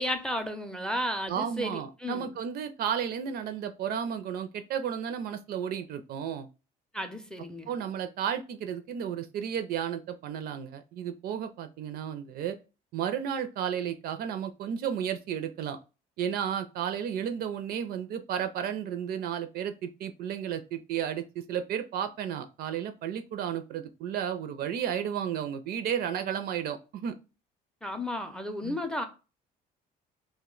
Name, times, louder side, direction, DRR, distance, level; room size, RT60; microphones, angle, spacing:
voice 1, 0.0-2.3 6.9-7.7 27.8-29.1, left 1 dB, 5° left, 0.4 m, -33 dB
voice 2, 1.3-6.5 7.7-12.6 12.9-15.8 16.2-27.1 28.6-28.8, right 8 dB, 65° right, 0.4 m, -33 dB
2.5 x 2.1 x 3.7 m
cardioid pair, 110°, 17 cm